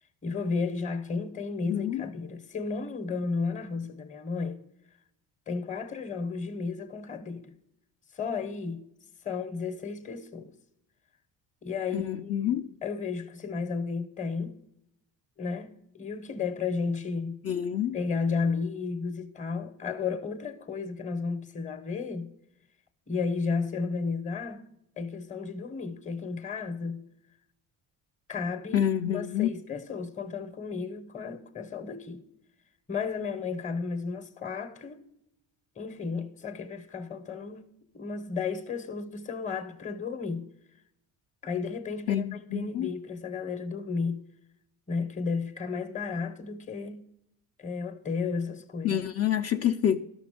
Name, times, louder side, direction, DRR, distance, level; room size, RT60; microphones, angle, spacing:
voice 1, 0.2-4.6 5.5-7.5 8.1-8.8 9.2-10.5 11.6-14.6 15.4-17.4 17.9-22.3 23.1-24.7 25.0-27.0 28.3-32.3 32.9-35.0 35.8-40.5 41.4-44.2 44.9-47.0 47.6-49.0, left 4 dB, 20° left, 0.8 m, -33 dB
voice 2, 1.6-2.0 11.9-12.7 17.4-18.0 28.7-29.5 42.1-42.9 48.8-50.0, left 10 dB, 40° left, 0.5 m, -27 dB
12.5 x 6.1 x 5.0 m
cardioid pair, 115°, 37 cm